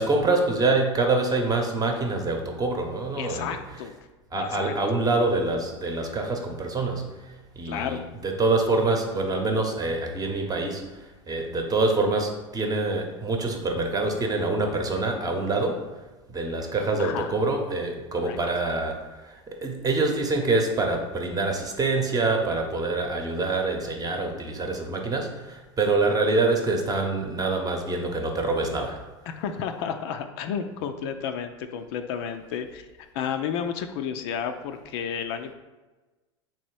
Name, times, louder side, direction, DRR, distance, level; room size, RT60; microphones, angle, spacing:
voice 1, 0.0-3.6 4.3-16.0 16.3-29.0, right 3 dB, 25° right, 3 dB, 0.9 m, -26 dB
voice 2, 3.2-3.9 4.4-4.7 7.6-8.0 17.0-17.3 18.2-18.4 29.3-32.8 33.1-35.5, left 7 dB, 60° left, 7 dB, 0.4 m, -32 dB
3.8 x 3.0 x 4.6 m, 1.2 s
hypercardioid pair, 85°, 15 cm